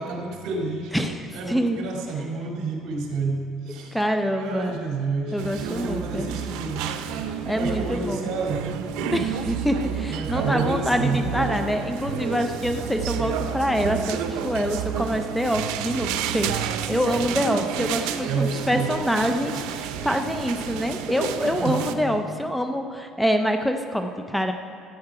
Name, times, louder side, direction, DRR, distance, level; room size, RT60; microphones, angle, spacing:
voice 1, 0.0-1.0 1.3-4.0 4.3-7.0 7.5-8.9 10.0-11.3 18.3-19.0 21.5-22.0, right 4 dB, 60° right, 0 dB, 2.2 m, -29 dB
voice 2, 0.9-1.8 3.9-4.7 5.3-6.3 7.5-8.3 9.1-24.5, equal, 5° left, 6 dB, 0.5 m, -26 dB
sound 1, 5.4-21.9, right 8 dB, 85° right, 0.7 m, -30 dB
13.5 x 8.5 x 4.8 m, 2.4 s
cardioid pair, 145°, 0 cm